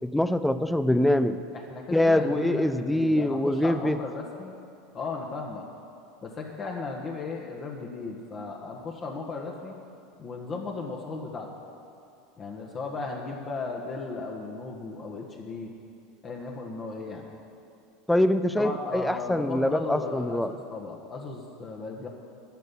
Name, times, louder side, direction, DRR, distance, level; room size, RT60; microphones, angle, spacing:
voice 1, 0.0-1.4 1.9-4.0 18.1-20.5, left 1 dB, 5° left, 11 dB, 0.5 m, -24 dB
voice 2, 1.5-4.5 4.9-5.6 6.2-9.7 10.2-11.5 12.4-15.7 16.2-17.3 18.6-22.1, left 4 dB, 35° left, 0 dB, 1.4 m, -36 dB
10.5 x 6.7 x 9.3 m, 2.5 s
hypercardioid pair, 80°, 0 cm